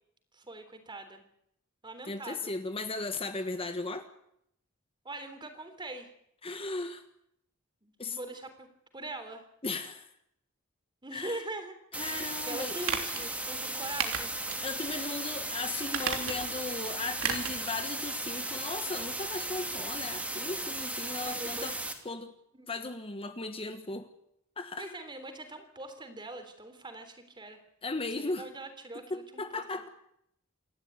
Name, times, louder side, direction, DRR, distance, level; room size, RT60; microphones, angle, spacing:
voice 1, 0.3-1.2 1.8-2.5 5.1-6.1 7.8-8.7 8.9-9.5 11.0-11.7 12.1-14.3 20.9-21.7 22.5-22.7 24.8-27.6 28.2-29.9, right 2 dB, 25° right, 8 dB, 3.5 m, -42 dB
voice 2, 2.1-4.1 6.4-7.0 8.0-8.2 9.6-10.1 11.1-11.4 12.0-12.8 14.6-21.7 22.0-22.3 22.7-24.1 24.6-24.9 27.8-28.5 29.1-29.9, left 3 dB, 25° left, 8 dB, 1.4 m, -36 dB
sound 1, 11.9-21.9, right 2 dB, 5° right, 2.9 m, -36 dB
sound 2, 12.8-13.2 14.0-14.6 15.0-15.1 15.8-16.6 17.2-17.6 17.9-18.0, right 6 dB, 85° right, 3.3 m, -33 dB
28.0 x 12.0 x 9.6 m, 0.75 s
head